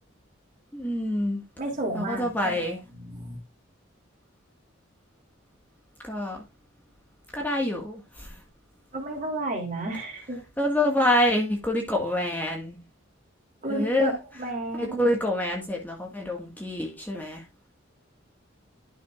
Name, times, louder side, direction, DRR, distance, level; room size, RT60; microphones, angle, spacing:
voice 1, 0.7-1.4 1.9-2.8 6.0-6.4 7.3-8.4 10.6-12.8 13.6-14.1 14.8-17.4, left 1 dB, 10° left, 1.6 m, -26 dB
voice 2, 1.6-3.4 8.9-10.4 13.6-14.1 14.4-15.2, right 1 dB, 40° right, 3.1 m, -32 dB
11.5 x 6.5 x 2.4 m
head